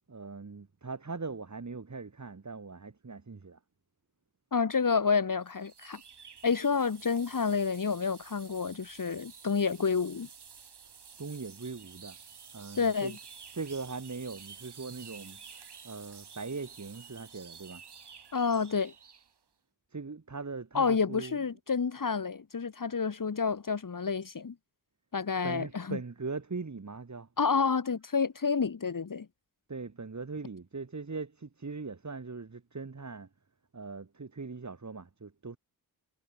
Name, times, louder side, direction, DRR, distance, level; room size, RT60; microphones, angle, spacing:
voice 1, 0.1-3.6 11.2-12.2 12.5-13.2 13.5-15.4 15.8-17.8 19.9-21.4 25.4-27.3 29.7-33.3 33.7-35.6, right 4 dB, 45° right, 6.3 m, -40 dB
voice 2, 4.5-6.0 6.4-10.3 12.8-13.1 18.3-18.9 20.7-24.5 25.1-26.0 27.4-29.3, left 5 dB, 50° left, 2.5 m, -29 dB
sound 1, 5.5-19.3, right 6 dB, 75° right, 4.6 m, -51 dB
wide cardioid pair, 105°, 40 cm